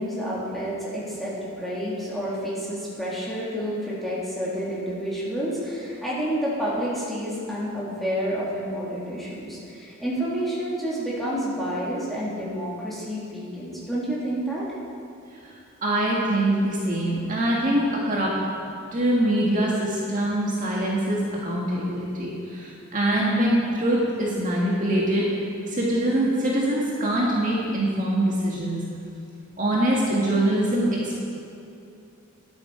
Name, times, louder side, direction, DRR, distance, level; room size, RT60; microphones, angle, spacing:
voice 1, 0.0-14.6, equal, ahead, -8 dB, 3.1 m, -29 dB
voice 2, 15.8-18.4 18.9-25.3 25.6-28.8 29.6-31.2, right 1 dB, 40° right, -4 dB, 1.8 m, -23 dB
13.0 x 11.5 x 4.9 m, 2.6 s
head